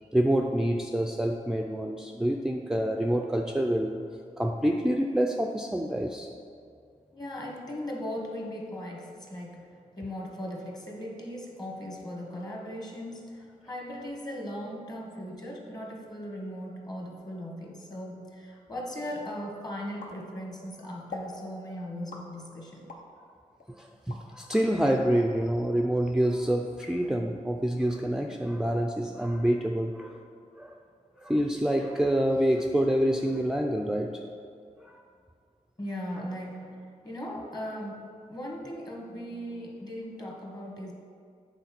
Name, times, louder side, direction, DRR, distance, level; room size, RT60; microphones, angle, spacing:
voice 1, 0.0-4.0 4.4-6.3 23.7-30.2 30.6-30.7 31.2-34.2 34.8-35.0, right 1 dB, 5° right, 2 dB, 0.4 m, -27 dB
voice 2, 7.1-22.9 35.8-38.0 38.3-40.9, equal, 30° left, 0 dB, 1.5 m, -38 dB
sound 1, 20.0-20.7 21.1-21.4 22.1-23.1 23.6-24.7, left 3 dB, 75° left, 0.9 m, -43 dB
8.1 x 3.9 x 5.9 m, 2.3 s
cardioid pair, 85°, 14 cm